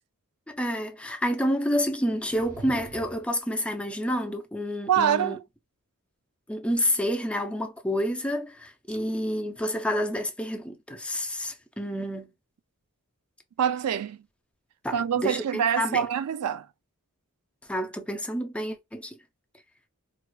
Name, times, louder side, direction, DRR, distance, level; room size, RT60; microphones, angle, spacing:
voice 1, 0.5-5.4 6.5-12.3 14.8-16.1 17.7-19.2, equal, 5° left, 0.4 m, -29 dB
sound 1, 2.1-3.4, right 2 dB, 40° right, 0.6 m, -44 dB
voice 2, 4.9-5.4 13.6-14.2 14.9-16.7, right 8 dB, 85° right, 0.4 m, -25 dB
4.5 x 2.4 x 2.2 m
head